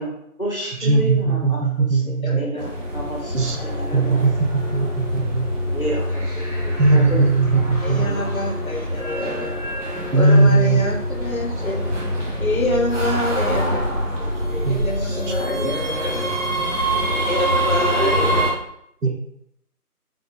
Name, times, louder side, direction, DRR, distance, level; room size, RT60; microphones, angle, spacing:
voice 1, 0.0-1.6 1.9-4.2 5.7-7.2 7.9-8.5 11.5-11.6 12.2-12.3 13.4-13.8 14.2-15.2, right 1 dB, 35° left, -3 dB, 0.9 m, -32 dB
voice 2, 0.8-2.4 3.3-3.6 3.9-5.5 6.8-8.1 10.1-10.8 14.7-14.8 19.0-19.1, right 3 dB, 80° right, 2 dB, 0.8 m, -18 dB
voice 3, 2.2-2.6 3.9-4.0 5.8-6.0 7.8-9.5 10.2-11.9 12.4-13.8 14.7-16.3 17.1-18.6, left 1 dB, 60° left, 3 dB, 0.7 m, -26 dB
sound 1, 2.6-18.5, equal, 50° right, 1.2 m, -25 dB
4.0 x 2.5 x 2.9 m, 0.72 s
figure-of-eight pair, 170°, 47 cm